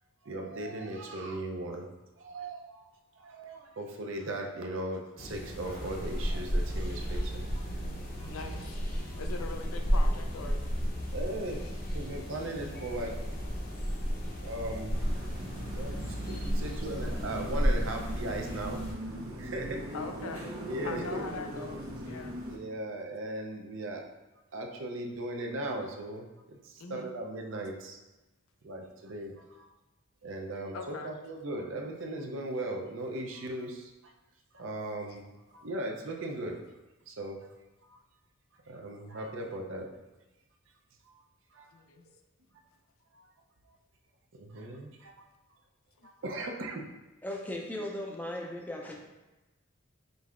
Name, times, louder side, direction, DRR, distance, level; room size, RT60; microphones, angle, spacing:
voice 1, 0.2-1.9 2.2-2.9 3.2-7.6 8.2-8.3 9.1-9.2 11.1-11.6 11.9-13.3 14.4-15.0 15.8-18.8 19.4-19.8 20.7-21.3 22.5-24.0 24.5-28.0 28.6-29.7 30.2-33.9 34.5-35.3 35.5-36.6 37.1-37.4 37.8-38.0 38.7-39.9 41.1-41.2 41.5-41.7 43.1-43.3 43.7-43.8 44.4-45.2 46.0-46.9, right 1 dB, 65° right, 2 dB, 0.5 m, -38 dB
sound 1, 5.2-18.9, equal, 45° left, 0.8 m, -33 dB
voice 2, 8.3-8.8 9.2-10.6 19.9-20.5 20.8-22.4 26.8-27.1 30.7-31.2 35.1-35.2 41.7-42.1 46.0-46.1, left 4 dB, 80° left, 5 dB, 0.4 m, -42 dB
sound 2, 14.9-22.6, equal, 85° right, 0.9 m, -40 dB
voice 3, 47.2-49.0, left 1 dB, 10° left, 0 dB, 0.4 m, -37 dB
5.2 x 3.2 x 2.4 m, 1.1 s
head